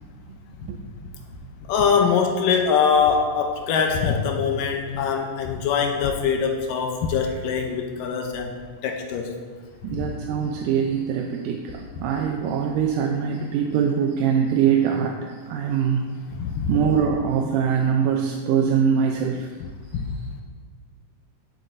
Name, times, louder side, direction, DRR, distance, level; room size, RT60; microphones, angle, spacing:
voice 1, 1.7-8.5 8.8-9.4 9.9-10.1 16.4-16.7 19.9-20.1, left 6 dB, 80° left, 3 dB, 2.3 m, -23 dB
voice 2, 9.8-16.1 16.7-19.5, right 7 dB, 80° right, 2 dB, 2.1 m, -23 dB
16.5 x 7.6 x 2.6 m, 1.5 s
omnidirectional pair, 4.0 m